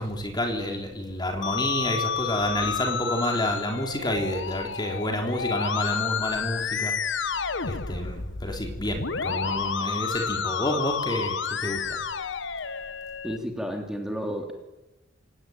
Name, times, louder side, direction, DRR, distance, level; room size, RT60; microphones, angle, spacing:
voice 1, 0.0-6.9 7.6-11.3 11.6-12.0, left 1 dB, 25° left, 3 dB, 4.0 m, -29 dB
Musical instrument, 1.4-13.4, left 6 dB, 70° left, 1.1 m, -30 dB
voice 2, 13.2-14.5, equal, 5° right, 2 dB, 3.5 m, -31 dB
27.5 x 18.5 x 9.2 m, 1.0 s
head